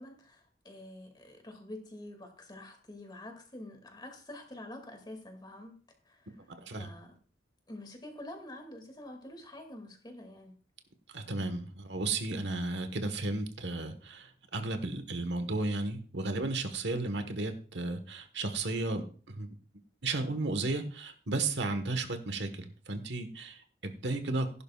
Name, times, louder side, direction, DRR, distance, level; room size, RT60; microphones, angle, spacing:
voice 1, 0.0-5.7 6.0-6.4 6.7-7.1 7.7-10.5, left 1 dB, 25° left, 4 dB, 2.4 m, -47 dB
voice 2, 6.5-6.9 11.1-19.5 20.0-24.6, right 2 dB, 80° right, 7 dB, 1.4 m, -34 dB
15.5 x 11.0 x 2.4 m, 0.40 s
head